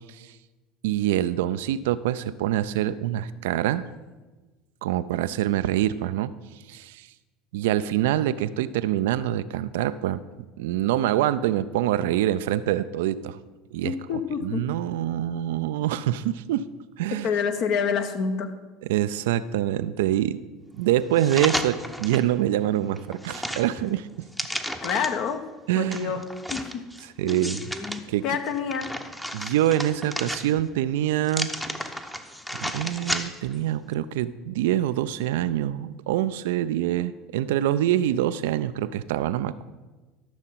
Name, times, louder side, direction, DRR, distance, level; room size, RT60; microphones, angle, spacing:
voice 1, 0.8-3.9 4.8-6.3 6.7-7.1 7.5-10.2 10.6-13.4 13.7-16.7 17.0-17.3 18.8-20.4 20.7-24.3 25.7-26.2 27.0-27.7 28.1-28.2 29.3-31.5 32.5-39.6, right 12 dB, 65° right, 14 dB, 0.4 m, -25 dB
voice 2, 13.8-14.6 17.2-18.5 24.8-25.4 25.8-26.2 26.5-26.6 27.2-27.5 28.2-28.9, left 6 dB, 50° left, 8 dB, 1.0 m, -27 dB
sound 1, 21.2-22.3 22.7-25.3 25.9-28.0 28.5-30.8 31.2-33.6 33.9-34.0, equal, 5° left, 0.8 m, -33 dB
13.5 x 6.4 x 5.6 m, 1.2 s
figure-of-eight pair, 70°, 0 cm